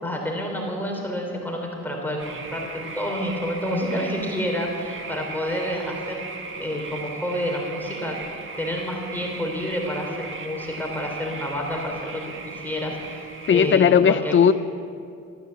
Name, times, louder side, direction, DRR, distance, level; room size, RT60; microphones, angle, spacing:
voice 1, 0.0-6.2 6.6-8.2 8.6-14.3, equal, 5° left, 0 dB, 3.4 m, -29 dB
sound 1, 2.2-13.8, right 4 dB, 40° right, 1.8 m, -38 dB
voice 2, 13.5-14.5, left 7 dB, 40° left, 14 dB, 0.7 m, -16 dB
14.0 x 13.5 x 7.7 m, 2.4 s
cardioid pair, 90°, 30 cm